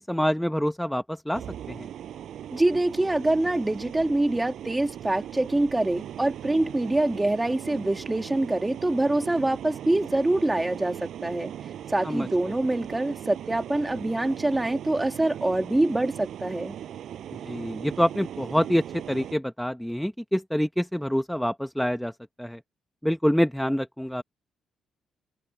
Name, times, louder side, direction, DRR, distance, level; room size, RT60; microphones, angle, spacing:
voice 1, 0.0-1.9 12.0-12.3 17.4-22.1 22.4-22.6 23.0-24.2, equal, ahead, 1.1 m, -26 dB
sound 1, 1.3-19.3, right 10 dB, 70° right, 6.7 m, -39 dB
voice 2, 2.5-11.5 11.9-16.7, right 2 dB, 15° right, 2.5 m, -25 dB
open air
cardioid pair, 90°, 0 cm